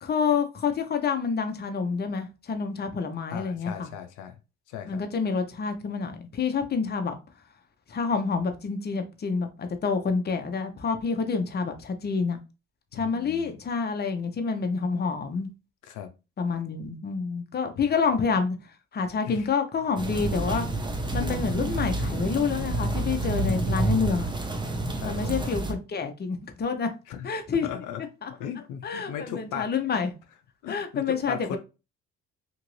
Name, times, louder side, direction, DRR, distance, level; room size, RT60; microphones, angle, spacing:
voice 1, 0.0-3.9 4.9-7.2 7.9-12.4 12.9-15.5 16.4-18.6 18.9-20.7 21.1-24.3 25.0-26.9 27.2-27.7 28.2-28.3 28.8-30.1 30.7-31.6, left 5 dB, 35° left, 0.6 m, -28 dB
voice 2, 3.3-4.4 4.7-5.0 12.9-13.5 15.9-16.1 17.8-17.9 19.2-19.5 23.4-23.9 24.9-25.3 27.1-28.0 28.4-30.0 30.6-31.6, left 9 dB, 90° left, 0.5 m, -38 dB
sound 1, 20.0-25.7, right 2 dB, 15° right, 0.6 m, -28 dB
2.9 x 2.5 x 3.0 m
cardioid pair, 90°, 30 cm